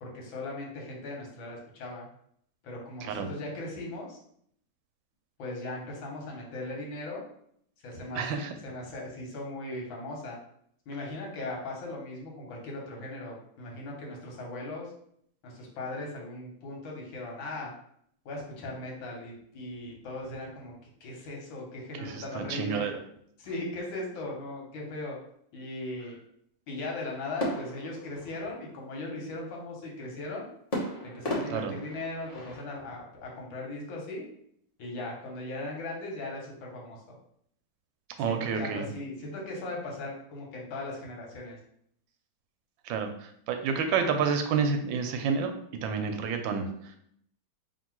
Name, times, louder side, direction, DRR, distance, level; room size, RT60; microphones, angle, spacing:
voice 1, 0.0-2.1 2.6-4.2 5.4-7.3 7.8-10.4 10.9-14.9 15.4-17.7 18.3-20.7 21.0-22.9 23.4-25.2 25.5-26.2 26.7-30.5 31.0-34.3 34.8-37.0 38.3-41.6, left 2 dB, 85° left, -1 dB, 1.8 m, -38 dB
voice 2, 8.1-8.5 22.0-22.9 31.5-31.7 38.2-38.9 42.8-45.5 45.8-46.7, right 6 dB, 85° right, 6 dB, 1.3 m, -29 dB
sound 1, 27.4-28.9 30.7-32.8, equal, 30° left, 0.7 m, -36 dB
3.6 x 2.4 x 4.4 m, 0.68 s
omnidirectional pair, 2.1 m